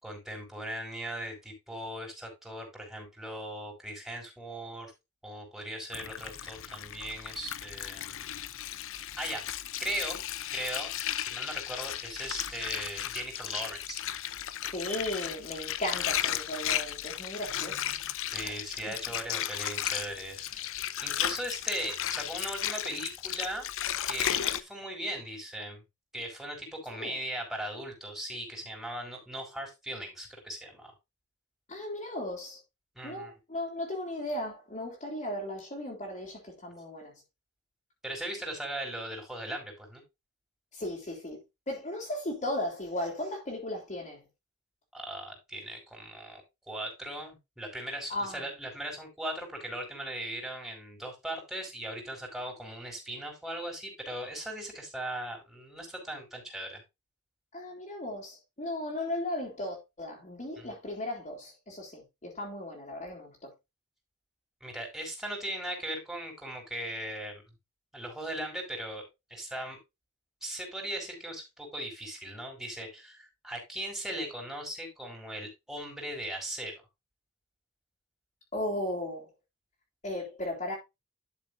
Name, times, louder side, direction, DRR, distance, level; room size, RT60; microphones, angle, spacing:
voice 1, 0.0-4.9 5.2-8.2 9.2-9.4 9.8-10.2 10.5-14.0 18.3-23.7 24.1-25.8 26.1-30.9 32.9-33.3 38.0-40.0 44.9-46.4 46.7-56.8 60.6-60.7 64.6-67.4 67.9-69.8 70.4-76.7, right 1 dB, ahead, 5.0 m, -38 dB
Water, 5.9-24.6, left 11 dB, 65° left, 0.7 m, -35 dB
voice 2, 14.6-18.0 18.4-18.5 27.0-27.2 31.7-32.6 33.0-37.1 40.7-41.4 41.7-44.2 48.1-48.4 57.5-63.5 78.5-79.3 80.0-80.7, left 1 dB, 35° left, 3.2 m, -36 dB
12.0 x 7.1 x 2.6 m
head